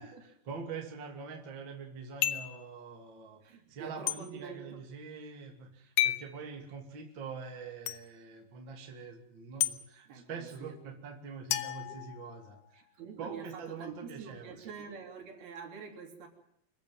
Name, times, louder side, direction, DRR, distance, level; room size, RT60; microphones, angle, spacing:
voice 1, 0.4-12.6 13.2-14.6, right 5 dB, 30° right, 3 dB, 2.8 m, -44 dB
sound 1, 2.2-2.6 4.1-4.2 6.0-6.3 7.9-8.0 9.6-9.8 11.5-12.6, left 13 dB, 80° left, 3.2 m, -31 dB
voice 2, 3.4-4.8 10.1-10.8 11.8-11.9 12.7-16.3, right 6 dB, 60° right, 4 dB, 5.1 m, -46 dB
26.0 x 14.5 x 9.2 m, 0.72 s
omnidirectional pair, 4.9 m